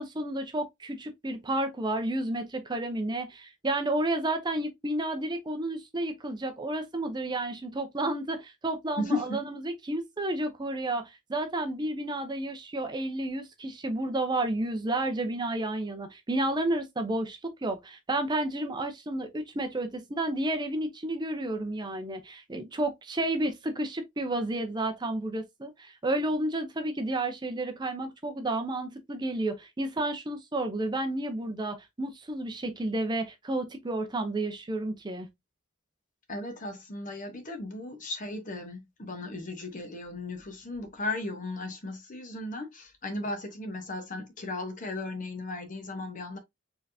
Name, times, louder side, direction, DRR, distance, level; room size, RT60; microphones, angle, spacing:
voice 1, 0.0-35.3, right 1 dB, 20° right, 0.6 m, -31 dB
voice 2, 9.0-9.4 36.3-46.4, left 2 dB, 40° left, 1.0 m, -36 dB
4.4 x 3.5 x 2.6 m
head